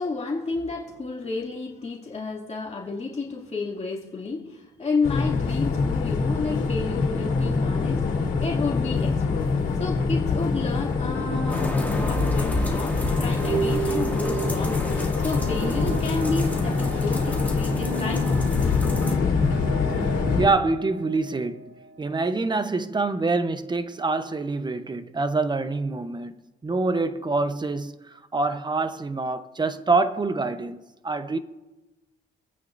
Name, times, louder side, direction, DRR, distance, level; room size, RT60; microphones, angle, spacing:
voice 1, 0.0-18.8, left 4 dB, 35° left, 2.5 m, -31 dB
sound 1, 5.0-20.5, left 4 dB, 75° left, 2.7 m, -25 dB
sound 2, 11.2-22.4, right 6 dB, 75° right, 1.1 m, -35 dB
sound 3, 11.5-19.1, left 2 dB, 10° left, 2.5 m, -33 dB
voice 2, 20.4-21.7 22.0-26.3 26.6-31.4, right 3 dB, 20° right, 0.8 m, -26 dB
26.5 x 9.1 x 2.6 m
cardioid pair, 90°, 20 cm